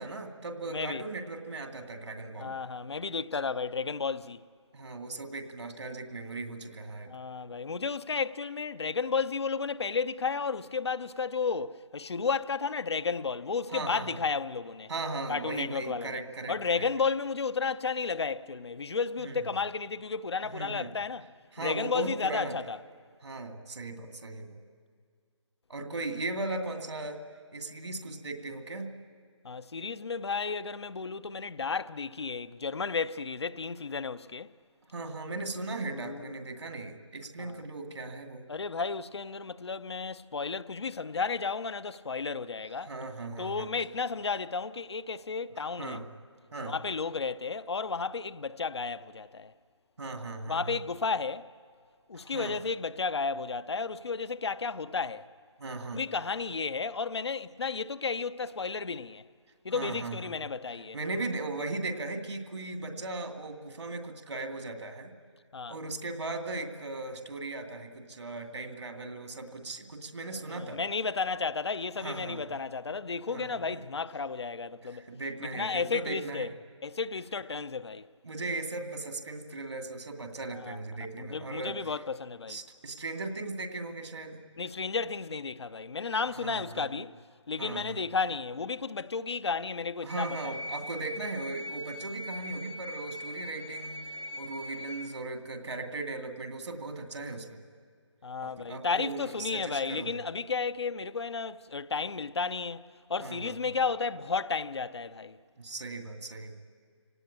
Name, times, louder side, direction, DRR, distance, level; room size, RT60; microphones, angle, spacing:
voice 1, 0.0-2.5 4.7-7.1 13.7-14.2 14.9-16.9 19.2-19.5 20.5-20.9 21.5-22.6 23.2-24.6 25.7-27.2 27.5-28.9 34.9-38.5 42.9-43.7 45.8-46.0 46.5-46.7 50.0-50.7 52.2-52.6 55.6-56.0 59.7-60.4 60.9-65.1 65.7-70.8 72.0-72.6 73.3-73.8 74.8-76.5 78.2-81.8 82.5-84.4 86.4-87.0 87.6-88.0 90.0-97.6 98.4-100.2 103.2-103.5 105.6-106.5, right 2 dB, 65° right, 2.4 m, -38 dB
voice 2, 0.7-1.0 2.4-4.4 7.1-14.9 15.3-16.2 16.5-21.3 21.6-22.8 29.4-34.5 35.8-36.3 37.4-37.6 38.5-42.9 43.4-46.0 46.6-49.5 50.5-51.5 52.1-55.3 55.9-59.2 59.6-61.0 65.5-65.8 70.5-75.0 75.5-76.5 76.8-78.1 80.6-80.8 81.2-82.6 84.6-87.2 87.5-90.3 98.2-105.4, left 5 dB, 60° left, 0.7 m, -33 dB
sound 1, 90.1-95.1, left 1 dB, 90° left, 4.1 m, -41 dB
27.0 x 18.0 x 8.7 m
figure-of-eight pair, 155°, 16 cm